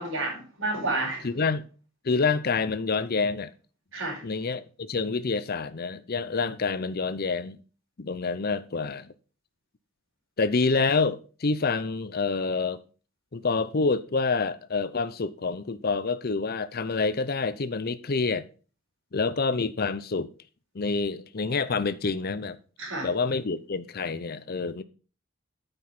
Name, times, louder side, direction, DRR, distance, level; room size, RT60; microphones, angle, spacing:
voice 1, 0.0-1.4 3.9-4.2 22.8-23.1, right 2 dB, 65° right, 4.6 m, -30 dB
voice 2, 1.2-1.7 2.0-3.5 4.2-7.6 8.0-9.1 10.4-12.8 13.3-18.5 19.1-20.3 20.7-22.6 23.0-24.8, left 4 dB, 45° left, 0.6 m, -27 dB
9.6 x 5.3 x 5.9 m
head